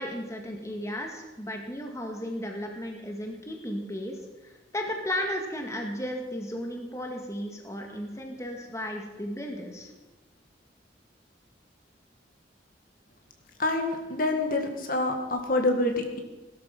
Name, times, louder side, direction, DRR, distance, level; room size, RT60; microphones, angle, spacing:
voice 1, 0.0-9.9, equal, 15° left, 2 dB, 1.8 m, -35 dB
voice 2, 13.6-16.2, left 2 dB, 50° left, 4 dB, 1.9 m, -27 dB
18.0 x 12.5 x 5.9 m, 1.1 s
head